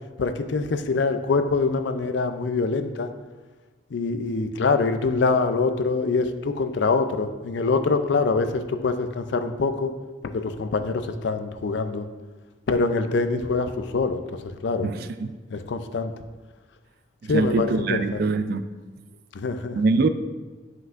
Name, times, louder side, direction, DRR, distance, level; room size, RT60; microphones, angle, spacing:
voice 1, 0.2-3.1 3.9-9.9 10.2-12.1 12.7-14.2 14.6-14.9 15.5-16.1 17.3-18.2 19.3-19.8, left 4 dB, 70° left, 9 dB, 0.4 m, -24 dB
voice 2, 14.8-15.4 17.3-18.7 19.7-20.1, right 3 dB, 50° right, 10 dB, 0.3 m, -23 dB
7.8 x 5.7 x 2.5 m, 1.3 s
head